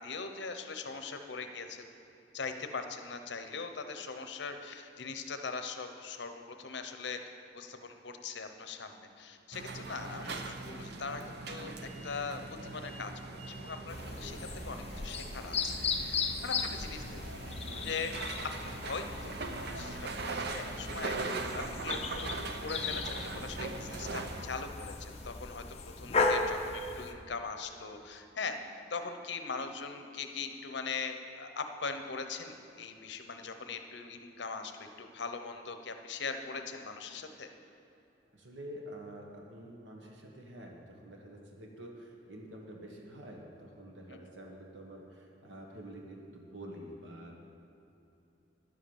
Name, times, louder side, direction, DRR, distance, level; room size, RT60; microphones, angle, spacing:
voice 1, 0.0-1.8 2.3-7.2 7.5-11.2 11.5-11.7 12.0-13.1 13.5-17.5 17.8-18.1 18.6-21.2 21.6-25.6 26.0-28.6 28.9-37.5 44.1-44.2, left 4 dB, 65° left, 7 dB, 0.8 m, -41 dB
sound 1, 9.5-24.5, right 3 dB, 60° right, 0.7 m, -41 dB
sound 2, 13.9-27.1, left 4 dB, 35° left, 0.7 m, -36 dB
voice 2, 38.3-47.3, right 1 dB, 75° right, 0 dB, 1.3 m, -48 dB
11.0 x 7.9 x 7.1 m, 2.9 s
head